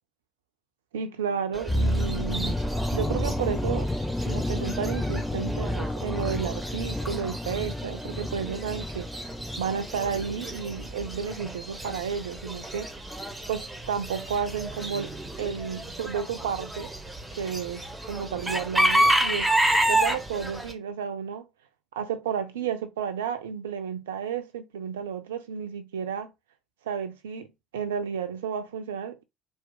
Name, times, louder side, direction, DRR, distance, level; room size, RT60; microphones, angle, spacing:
voice 1, 0.9-2.6 2.9-3.9 4.3-9.1 9.6-12.9 13.5-15.1 15.4-16.9 17.3-19.5 19.9-21.4 21.9-26.3 26.9-29.2, right 7 dB, 70° right, 0.4 m, -32 dB
Chicken rooster / Bird, 1.5-20.7, right 1 dB, 10° right, 0.7 m, -31 dB
sound 1, 1.7-11.7 11.9-12.1, left 1 dB, 10° left, 0.4 m, -31 dB
2.8 x 2.1 x 2.5 m
figure-of-eight pair, 55°, 0 cm